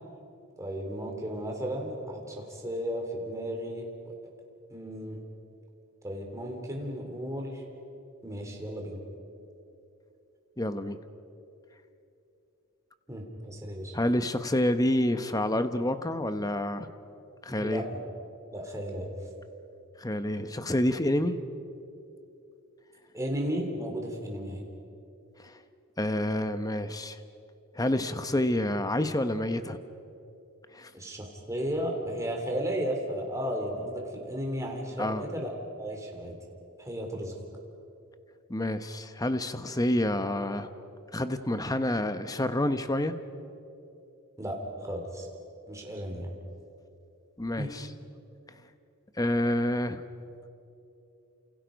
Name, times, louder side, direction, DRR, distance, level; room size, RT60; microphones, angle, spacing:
voice 1, 0.6-4.1 4.7-5.2 6.0-7.6 8.2-9.0 13.1-13.9 17.5-18.0 18.5-19.1 23.1-24.7 30.9-35.5 35.8-36.4 36.8-37.3 44.4-45.3 45.7-46.3 47.6-47.7, equal, 15° right, 1 dB, 3.4 m, -34 dB
voice 2, 10.6-11.0 13.9-16.9 17.4-17.8 20.0-21.4 25.4-25.6 26.0-27.2 27.7-29.8 30.7-30.9 35.0-35.2 38.5-40.7 41.1-43.1 47.4-47.9 49.2-50.0, left 1 dB, 15° left, 10 dB, 1.0 m, -28 dB
29.5 x 28.0 x 5.3 m, 2.8 s
head